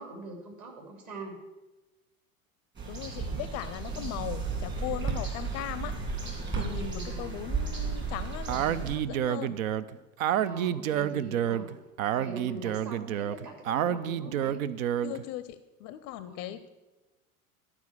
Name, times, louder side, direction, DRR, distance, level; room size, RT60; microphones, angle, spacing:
voice 1, 0.0-1.4 6.6-7.4 10.3-11.7 12.1-14.7 16.2-16.6, right 2 dB, 40° right, 1 dB, 2.9 m, -43 dB
voice 2, 2.8-5.9 6.6-9.6 15.0-16.7, left 13 dB, 40° left, 13 dB, 0.5 m, -38 dB
sound 1, 2.8-9.0, right 4 dB, 25° right, 2.5 m, -34 dB
Speech, 8.5-15.2, right 10 dB, 75° right, 0.5 m, -29 dB
11.5 x 4.8 x 6.6 m, 1.1 s
figure-of-eight pair, 75°, 42 cm